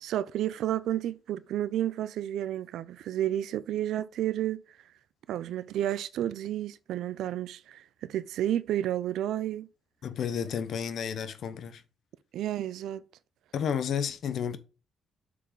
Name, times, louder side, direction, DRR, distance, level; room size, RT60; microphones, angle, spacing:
voice 1, 0.0-4.6 5.3-9.7 12.3-13.0, right 12 dB, 80° right, 0.5 m, -31 dB
voice 2, 10.0-11.8 13.5-14.6, left 8 dB, 65° left, 0.9 m, -31 dB
6.6 x 3.9 x 5.0 m
cardioid pair, 90°, 0 cm